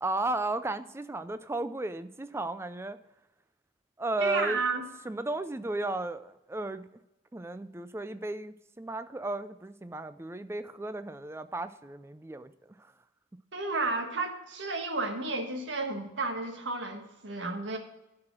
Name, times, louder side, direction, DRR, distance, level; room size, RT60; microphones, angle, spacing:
voice 1, 0.0-3.0 4.0-4.6 5.1-6.8 7.3-12.8, right 2 dB, 15° right, 12 dB, 0.4 m, -34 dB
voice 2, 4.2-4.8 13.5-17.8, right 3 dB, 85° right, 4 dB, 1.5 m, -32 dB
12.0 x 4.8 x 6.1 m, 0.94 s
head